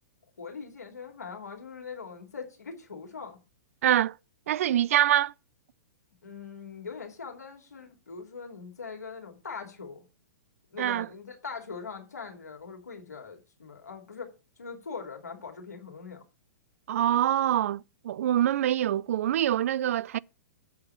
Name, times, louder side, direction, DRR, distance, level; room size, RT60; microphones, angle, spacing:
voice 1, 0.4-3.4 6.2-10.0 10.7-14.3 14.6-16.2, left 5 dB, 80° left, 2.7 m, -41 dB
voice 2, 3.8-4.2 4.5-5.3 10.8-11.1 16.9-20.2, right 11 dB, 60° right, 0.4 m, -25 dB
8.0 x 4.8 x 6.9 m
figure-of-eight pair, 110°, 9 cm